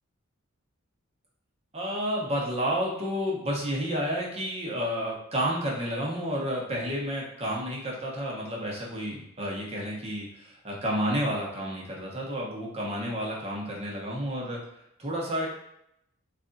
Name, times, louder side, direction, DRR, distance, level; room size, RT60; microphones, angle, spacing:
voice 1, 1.7-14.6 15.0-15.5, equal, 30° right, -3 dB, 0.9 m, -30 dB
3.3 x 2.4 x 3.9 m, 0.78 s
head